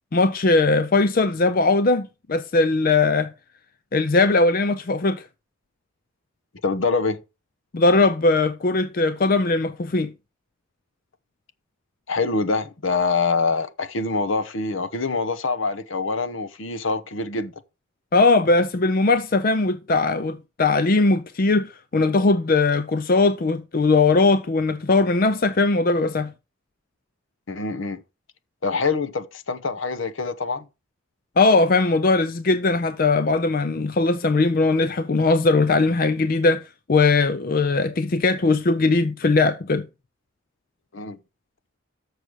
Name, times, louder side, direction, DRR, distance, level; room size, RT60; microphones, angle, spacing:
voice 1, 0.1-3.3 3.9-5.3 7.7-10.1 18.1-26.3 31.4-36.6 36.9-39.8, left 3 dB, 45° left, 0.5 m, -19 dB
voice 2, 6.6-7.2 12.1-17.5 27.5-28.0 28.6-30.7 40.9-41.2, left 4 dB, 65° left, 0.8 m, -25 dB
6.8 x 6.1 x 6.2 m
head